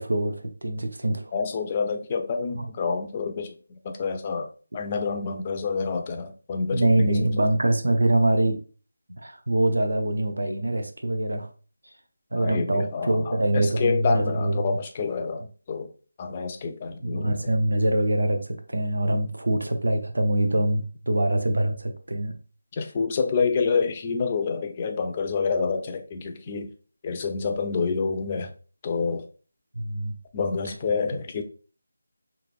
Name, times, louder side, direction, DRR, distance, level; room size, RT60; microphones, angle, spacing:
voice 1, 0.0-1.3 2.6-2.7 6.7-8.6 9.2-11.5 12.3-14.8 17.0-22.3 29.7-30.1, right 1 dB, 75° right, 0.6 m, -24 dB
voice 2, 1.3-7.5 12.3-15.9 16.2-17.6 22.7-26.7 27.0-28.5 28.8-29.3 30.3-31.4, left 5 dB, 25° left, 0.4 m, -28 dB
3.0 x 2.4 x 2.4 m
figure-of-eight pair, 165°, 0 cm